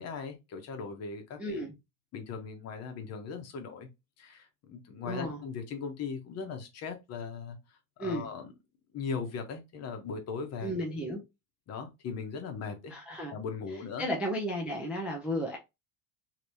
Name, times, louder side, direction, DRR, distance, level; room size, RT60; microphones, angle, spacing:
voice 1, 0.0-1.6 2.1-3.9 4.2-7.6 8.0-8.5 8.9-10.7 11.7-12.9 13.3-14.1, left 5 dB, 40° left, 0.9 m, -38 dB
voice 2, 1.4-1.7 5.0-5.4 8.0-8.3 10.6-11.2 12.9-13.3 14.0-15.6, equal, 5° right, 0.3 m, -33 dB
3.3 x 2.9 x 2.6 m
cardioid pair, 140°, 41 cm